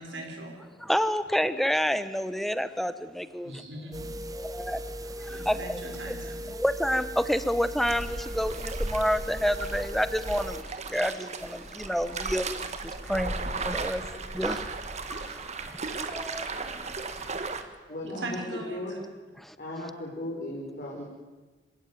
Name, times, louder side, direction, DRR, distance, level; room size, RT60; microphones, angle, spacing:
voice 1, 0.0-0.9 3.4-4.2 4.5-4.6 5.3-6.5 9.6-9.7 10.4-10.5 12.1-12.4 13.0-13.1 17.3-19.0, right 1 dB, 75° right, 2 dB, 4.5 m, -42 dB
voice 2, 0.8-3.6 4.3-5.8 6.1-6.2 6.5-14.7 15.0-17.0 19.4-19.6, equal, ahead, 13 dB, 1.1 m, -29 dB
sound 1, 3.9-10.6, equal, 20° right, 1.1 m, -38 dB
sound 2, 7.9-17.6, right 3 dB, 40° right, 1.7 m, -35 dB
voice 3, 17.9-19.0 19.6-21.1, left 1 dB, 50° left, -4 dB, 5.1 m, -36 dB
26.5 x 17.0 x 9.5 m, 1.3 s
head